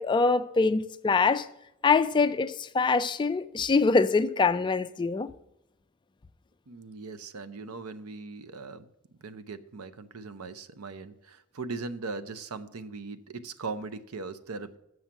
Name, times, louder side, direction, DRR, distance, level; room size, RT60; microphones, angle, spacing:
voice 1, 0.0-1.5 1.8-5.3, left 4 dB, 20° left, 0.3 m, -24 dB
voice 2, 6.7-14.8, right 4 dB, 75° right, 0.6 m, -39 dB
7.4 x 6.3 x 6.9 m
head